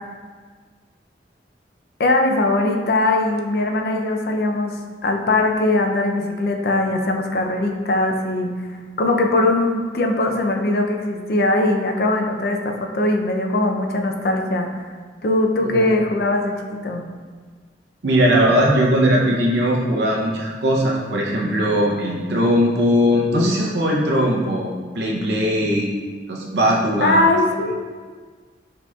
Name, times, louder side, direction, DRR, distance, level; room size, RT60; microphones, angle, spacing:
voice 1, 2.0-4.8 5.0-8.5 9.0-14.7 15.2-17.0 27.0-27.8, left 2 dB, 55° left, 2 dB, 0.4 m, -20 dB
voice 2, 15.6-16.0 18.0-25.9 26.3-27.3, equal, 70° right, -3 dB, 0.6 m, -19 dB
6.1 x 2.9 x 2.3 m, 1.5 s
head